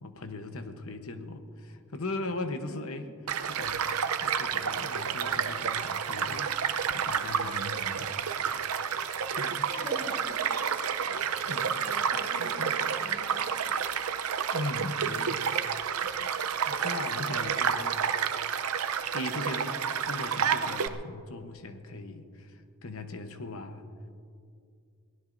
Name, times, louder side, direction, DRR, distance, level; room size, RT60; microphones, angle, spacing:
voice 1, 0.0-3.1 3.5-3.9 4.2-6.5 6.9-8.1 9.4-9.7 11.5-11.8 12.4-12.8 14.5-15.4 16.2-16.3 16.6-18.1 19.1-19.8 20.1-23.9, left 2 dB, 70° left, 8 dB, 1.0 m, -39 dB
Child speech kid speaking / Stream / Car passing by, 3.3-20.9, right 7 dB, 80° right, 0.6 m, -30 dB
voice 2, 9.7-10.5 11.8-12.6 12.9-13.5, equal, 45° left, -3 dB, 2.7 m, -44 dB
22.5 x 17.5 x 2.6 m, 2.4 s
head